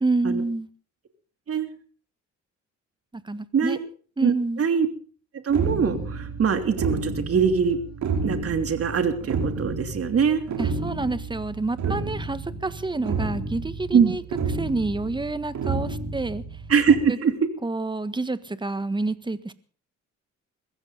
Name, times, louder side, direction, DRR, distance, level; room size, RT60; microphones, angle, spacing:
voice 1, 0.0-0.7 3.1-3.8 4.2-4.6 10.6-14.2 14.5-16.4 17.1-17.2 17.6-19.5, right 2 dB, 15° right, 13 dB, 1.6 m, -28 dB
voice 2, 5.4-7.8 8.2-10.4 13.9-14.1 16.7-17.3, right 6 dB, 50° right, 7 dB, 3.1 m, -22 dB
sound 1, 5.5-16.9, right 4 dB, 70° right, 5.2 m, -31 dB
22.0 x 15.5 x 4.0 m, 0.42 s
cardioid pair, 90°, 30 cm